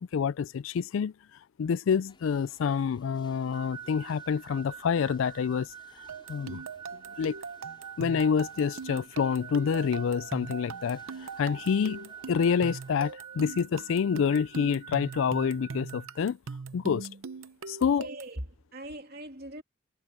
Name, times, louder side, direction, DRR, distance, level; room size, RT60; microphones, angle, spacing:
voice 1, 0.1-1.1 1.6-5.7 6.3-6.6 7.2-7.4 8.0-16.4 16.7-17.1 17.7-18.1, left 6 dB, 70° left, 0.3 m, -27 dB
sound 1, 2.1-13.1, left 2 dB, 25° left, 6.4 m, -61 dB
sound 2, 3.5-16.2, right 8 dB, 20° right, 1.3 m, -47 dB
sound 3, 6.1-18.4, right 4 dB, 75° right, 0.7 m, -41 dB
voice 2, 17.8-19.6, right 1 dB, 50° right, 3.0 m, -41 dB
head